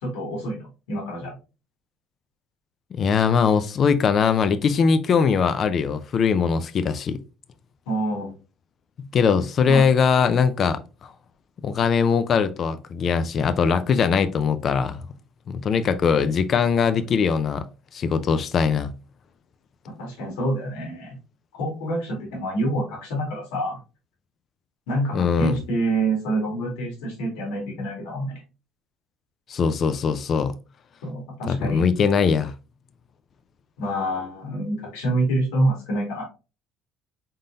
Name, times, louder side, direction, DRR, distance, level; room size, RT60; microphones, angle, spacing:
voice 1, 0.0-1.4 7.9-8.3 9.7-9.9 19.9-21.2 21.5-23.8 24.9-28.4 31.0-31.8 33.8-36.2, right 1 dB, 90° left, 2.0 m, -27 dB
voice 2, 3.0-7.2 9.0-11.1 11.6-15.1 15.5-17.7 17.9-18.9 25.1-25.6 29.5-30.6 31.5-32.5, left 6 dB, 45° left, 0.4 m, -21 dB
3.8 x 3.7 x 2.7 m
supercardioid pair, 95°, 0 cm